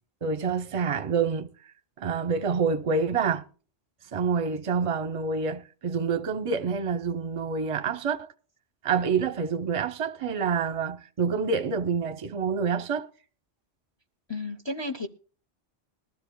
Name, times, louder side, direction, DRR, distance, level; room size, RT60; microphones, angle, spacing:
voice 1, 0.2-1.5 2.0-3.5 4.1-8.3 8.8-13.1, right 5 dB, 35° right, 0.6 m, -27 dB
voice 2, 14.3-15.1, left 2 dB, 30° left, 0.6 m, -32 dB
20.5 x 13.0 x 2.2 m
omnidirectional pair, 1.2 m